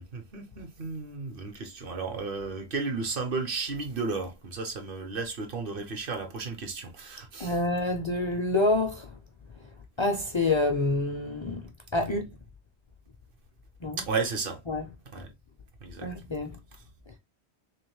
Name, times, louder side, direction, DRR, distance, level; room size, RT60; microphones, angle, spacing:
voice 1, 0.0-7.6 14.0-14.6 15.1-15.3 15.8-16.1, right 4 dB, 55° right, 1.0 m, -33 dB
voice 2, 7.4-9.1 10.0-11.6 11.9-12.3 13.8-14.0 14.7-14.9 16.0-16.5, left 2 dB, 45° left, 0.3 m, -27 dB
3.4 x 3.2 x 3.1 m
omnidirectional pair, 1.1 m